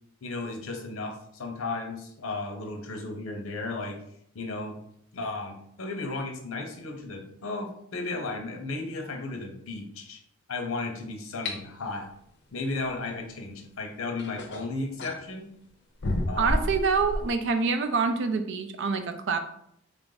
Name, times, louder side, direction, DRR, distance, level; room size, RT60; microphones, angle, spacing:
voice 1, 0.2-4.0 4.3-4.8 5.1-10.2 10.5-12.1 12.5-15.5 16.3-16.7, left 3 dB, 90° left, 4 dB, 0.7 m, -34 dB
sound 1, 11.4-11.6 13.5-13.6 14.2-15.2 16.0-17.3, left 1 dB, 60° left, 0.6 m, -30 dB
voice 2, 16.4-19.4, right 4 dB, 60° right, 8 dB, 0.4 m, -26 dB
3.4 x 2.5 x 3.8 m, 0.73 s
head